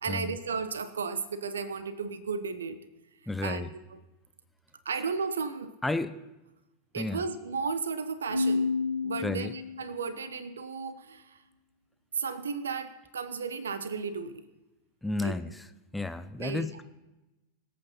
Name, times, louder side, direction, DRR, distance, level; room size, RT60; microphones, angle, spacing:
voice 1, 0.0-2.8 3.4-3.6 3.9-4.0 4.8-5.7 6.9-8.8 9.0-11.4 12.2-14.4 15.2-15.3 16.4-16.7, right 5 dB, 70° right, 14 dB, 0.9 m, -34 dB
voice 2, 3.3-3.7 5.8-6.2 7.0-7.2 9.2-9.5 15.0-15.7 15.9-16.8, left 2 dB, 5° left, 10 dB, 0.6 m, -32 dB
Keyboard (musical), 8.3-10.1, left 4 dB, 90° right, 0.5 m, -30 dB
24.5 x 8.6 x 4.2 m, 1.0 s
figure-of-eight pair, 90°, 0 cm